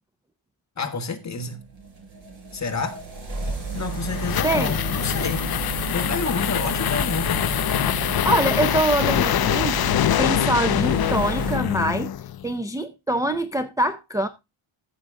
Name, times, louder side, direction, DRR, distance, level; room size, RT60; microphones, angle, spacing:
voice 1, 0.8-1.6 2.5-3.0 3.7-5.5 5.9-7.5, left 4 dB, 35° left, 1.7 m, -29 dB
sound 1, 1.2-11.6, right 6 dB, 70° right, 4.6 m, -32 dB
sound 2, 3.6-12.5, left 11 dB, 50° left, 0.5 m, -24 dB
voice 2, 4.4-4.8 8.2-9.8 10.2-12.1 12.4-14.3, right 1 dB, 5° right, 0.5 m, -24 dB
14.0 x 6.6 x 3.6 m
wide cardioid pair, 165°, 48 cm